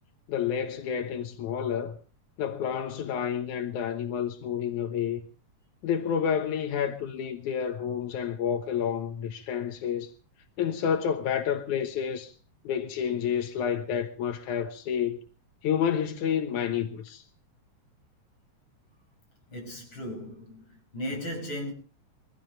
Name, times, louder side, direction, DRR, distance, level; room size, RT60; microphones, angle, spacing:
voice 1, 0.3-2.0 2.4-5.2 5.8-10.1 10.6-12.3 12.6-15.2 15.6-17.2, left 8 dB, 90° left, 2.7 m, -29 dB
voice 2, 19.5-20.6 20.9-21.7, equal, 40° left, 7.5 m, -36 dB
23.0 x 16.0 x 3.3 m
omnidirectional pair, 3.3 m